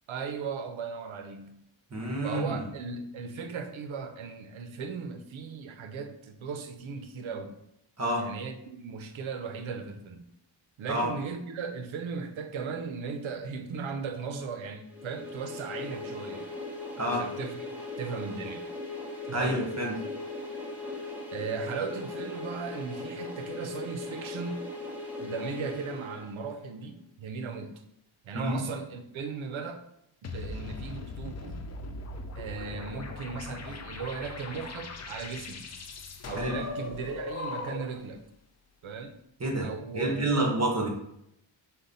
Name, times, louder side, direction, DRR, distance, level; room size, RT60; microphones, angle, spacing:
voice 1, 0.1-1.6 2.2-7.6 8.2-10.3 10.8-16.5 17.1-17.7 18.0-18.6 19.3-19.6 21.3-24.6 25.2-27.8 28.2-29.8 30.2-31.6 32.4-35.6 36.3-38.2 38.8-39.2 39.6-40.5, right 5 dB, 75° right, 6 dB, 0.6 m, -37 dB
voice 2, 1.9-2.6 8.0-8.3 10.9-11.1 17.0-17.2 19.3-19.9 28.3-28.6 36.4-36.5 39.4-40.9, right 1 dB, 30° right, -1 dB, 1.1 m, -28 dB
sound 1, 14.9-26.7, left 2 dB, 5° right, 0.9 m, -39 dB
sound 2, 30.2-38.1, left 3 dB, 35° left, 0.4 m, -39 dB
5.2 x 2.2 x 4.0 m, 0.78 s
wide cardioid pair, 95°, 48 cm